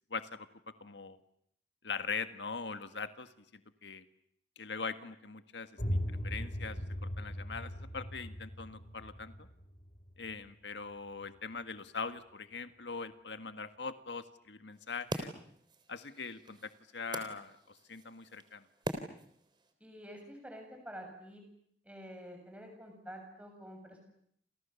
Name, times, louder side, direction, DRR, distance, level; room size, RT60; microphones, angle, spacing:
voice 1, 0.1-0.5 0.8-1.2 1.8-4.0 4.5-9.5 10.2-15.3 15.9-18.6, left 5 dB, 80° left, 10 dB, 1.6 m, -42 dB
sound 1, 5.8-11.4, equal, 45° left, 7.0 m, -39 dB
sound 2, 14.7-19.7, right 1 dB, 25° right, 3.6 m, -44 dB
voice 2, 19.8-21.5 21.8-24.0, equal, 5° right, 3 dB, 7.5 m, -48 dB
29.0 x 29.0 x 7.1 m, 0.69 s
head